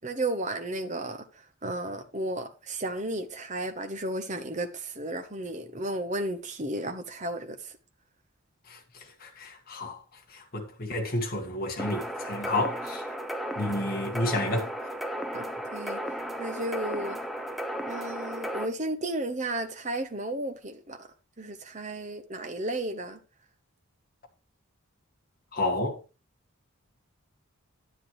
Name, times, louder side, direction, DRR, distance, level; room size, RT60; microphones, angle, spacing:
voice 1, 0.0-1.2 1.6-7.6 15.3-16.0 16.4-17.2 17.9-21.0 21.4-23.2, right 1 dB, 35° right, 1.0 m, -33 dB
voice 2, 8.7-10.0 10.3-13.0 13.6-14.7 25.5-26.0, left 2 dB, 45° left, 1.8 m, -31 dB
sound 1, 11.8-18.7, equal, ahead, 0.8 m, -34 dB
10.0 x 9.2 x 3.2 m
head